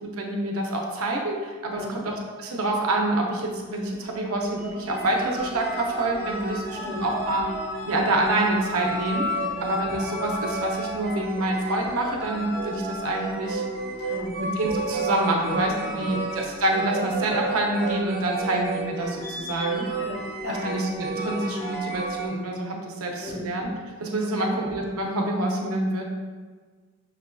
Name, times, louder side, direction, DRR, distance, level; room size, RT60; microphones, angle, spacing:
voice 1, 0.0-7.5 7.9-9.3 9.6-13.6 14.4-19.9 20.5-23.7 24.0-26.0, right 1 dB, 90° right, 0 dB, 0.6 m, -27 dB
sound 1, 4.6-22.3, right 2 dB, 45° right, 0.7 m, -32 dB
voice 2, 6.7-7.1 9.4-9.6 14.1-14.3 15.3-15.6 15.8-16.2 20.0-20.7 23.2-23.5 24.2-24.5, left 1 dB, 80° left, -3 dB, 1.0 m, -36 dB
6.1 x 2.5 x 2.2 m, 1.5 s
head